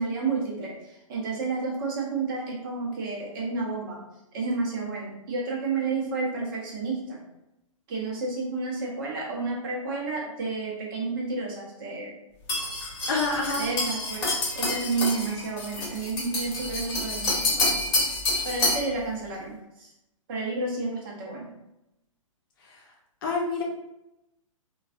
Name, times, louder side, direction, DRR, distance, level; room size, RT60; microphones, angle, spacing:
voice 1, 0.0-4.0 4.3-7.3 7.9-12.2 13.6-17.8 18.4-19.9 20.3-21.5, right 3 dB, 40° right, -2 dB, 0.9 m, -31 dB
sound 1, 12.5-18.9, left 2 dB, 25° left, 1.2 m, -28 dB
voice 2, 13.1-13.7 23.2-23.6, left 3 dB, 40° left, -2 dB, 0.7 m, -27 dB
3.1 x 2.3 x 2.5 m, 0.89 s
figure-of-eight pair, 125°, 17 cm